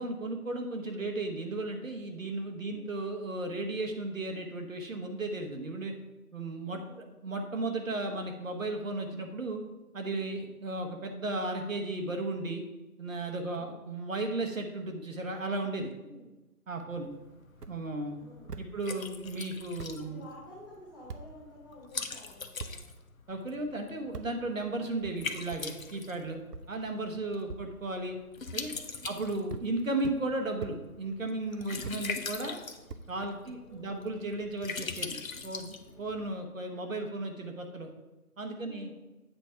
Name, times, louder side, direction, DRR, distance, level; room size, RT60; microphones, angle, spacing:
voice 1, 0.0-5.9 6.3-6.8 7.2-9.6 9.9-12.6 13.0-15.9 16.7-17.1 17.7-18.2 18.6-20.2 23.3-26.4 26.7-28.2 28.5-28.7 29.0-32.6 33.1-35.2 35.4-37.9 38.4-38.9, right 2 dB, 55° right, 4 dB, 1.2 m, -35 dB
voice 2, 6.7-7.2 10.1-10.4 13.2-13.9 16.0-16.3 17.9-19.2 20.0-22.8 27.2-27.6 28.9-29.2 33.3-34.2 35.8-36.3 38.6-38.9, left 1 dB, 15° left, -8 dB, 1.5 m, -53 dB
Liquid, 16.9-36.3, left 4 dB, 60° left, 0.9 m, -43 dB
sound 1, 17.5-17.7 18.5-18.7 19.4-19.5 19.8-19.9 21.1-21.2 22.6-22.7 24.1-24.3 25.5-25.6 26.5-26.6 27.5-27.6 28.7-29.1 29.5-29.7 30.0-30.2 30.6-30.7 31.8-32.0 32.9-33.6, right 4 dB, 85° right, 0.9 m, -41 dB
8.3 x 4.4 x 5.7 m, 1.0 s
figure-of-eight pair, 160°, 46 cm